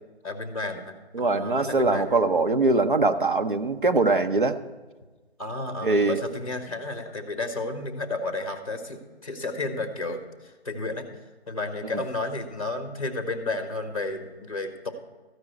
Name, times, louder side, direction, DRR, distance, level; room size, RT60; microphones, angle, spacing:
voice 1, 0.2-2.0 5.4-11.1 11.5-14.9, left 2 dB, 30° left, 8 dB, 1.2 m, -32 dB
voice 2, 1.1-4.6 5.8-6.2 11.9-12.0, right 3 dB, 50° right, 7 dB, 0.7 m, -22 dB
14.0 x 4.9 x 7.9 m, 1.3 s
figure-of-eight pair, 180°, 33 cm